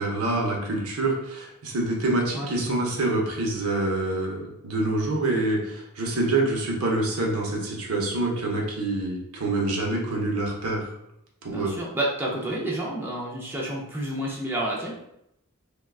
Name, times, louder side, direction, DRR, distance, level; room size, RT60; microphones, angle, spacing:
voice 1, 0.0-10.9 11.4-11.8, right 2 dB, 85° right, 0 dB, 0.7 m, -26 dB
voice 2, 2.3-2.9 11.5-14.9, right 1 dB, 10° right, -4 dB, 0.4 m, -30 dB
3.4 x 2.2 x 2.3 m, 0.80 s
head